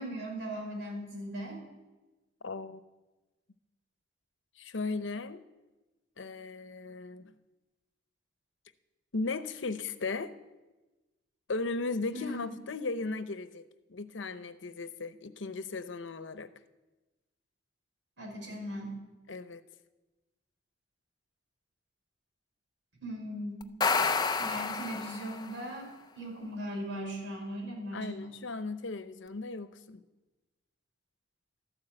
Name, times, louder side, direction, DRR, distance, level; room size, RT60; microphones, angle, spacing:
voice 1, 0.0-1.6 12.1-12.5 18.2-19.0 23.0-23.8 24.4-25.9 26.2-28.4, equal, 85° right, 0 dB, 5.4 m, -38 dB
voice 2, 2.4-2.8 4.6-5.4 6.2-7.3 9.1-10.3 11.5-13.6 13.9-16.5 19.3-19.6 27.9-30.0, left 3 dB, 90° left, 12 dB, 0.8 m, -36 dB
sound 1, 23.6-25.6, left 4 dB, 20° left, 0.5 m, -29 dB
13.0 x 11.5 x 7.8 m, 1.1 s
head